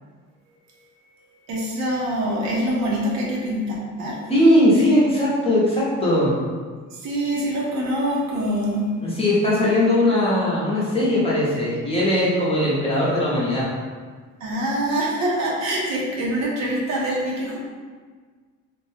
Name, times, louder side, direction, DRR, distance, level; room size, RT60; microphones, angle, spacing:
voice 1, 1.5-4.3 6.9-8.9 14.4-17.6, right 1 dB, 65° right, -3 dB, 0.8 m, -25 dB
voice 2, 4.3-6.4 9.0-13.7, left 1 dB, 20° left, -7 dB, 0.8 m, -19 dB
2.5 x 2.2 x 3.3 m, 1.5 s
cardioid pair, 120°, 30 cm